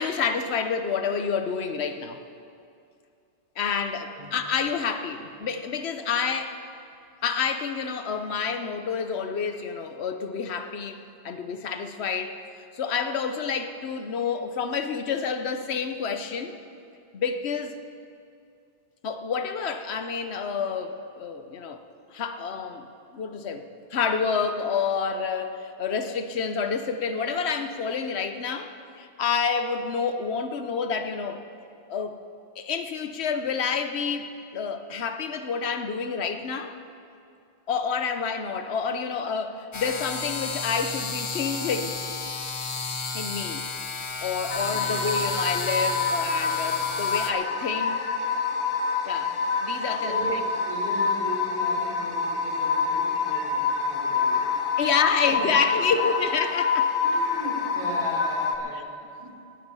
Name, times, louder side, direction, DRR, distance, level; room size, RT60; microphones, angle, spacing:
voice 1, 0.0-2.2 3.6-6.6 7.2-12.4 12.7-16.6 17.1-17.8 19.0-21.8 22.1-22.9 23.1-31.4 31.9-32.2 32.6-36.8 37.7-42.0 43.1-43.6 44.2-48.0 49.0-50.4 54.8-56.9, left 6 dB, 85° left, 8 dB, 1.1 m, -28 dB
sound 1, 39.7-47.3, left 4 dB, 35° left, 0.6 m, -33 dB
voice 2, 44.4-44.9 50.0-54.5 54.8-54.9 55.3-55.5 55.9-56.0 57.0-58.8 59.2-59.3, right 1 dB, 50° right, -6 dB, 4.8 m, -37 dB
sound 2, 44.5-58.6, left 5 dB, 55° left, 1.3 m, -26 dB
18.0 x 9.9 x 5.5 m, 2.5 s
omnidirectional pair, 1.1 m